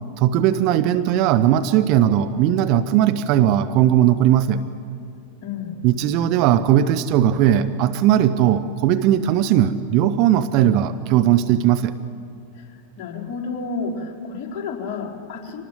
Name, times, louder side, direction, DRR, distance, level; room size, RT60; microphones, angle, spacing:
voice 1, 0.2-4.7 5.8-11.9, right 11 dB, 40° right, 9 dB, 0.9 m, -18 dB
voice 2, 5.4-5.8 12.6-12.7 13.0-15.6, left 4 dB, 30° left, -3 dB, 4.3 m, -30 dB
25.0 x 19.5 x 7.8 m, 2.3 s
figure-of-eight pair, 90°, 0 cm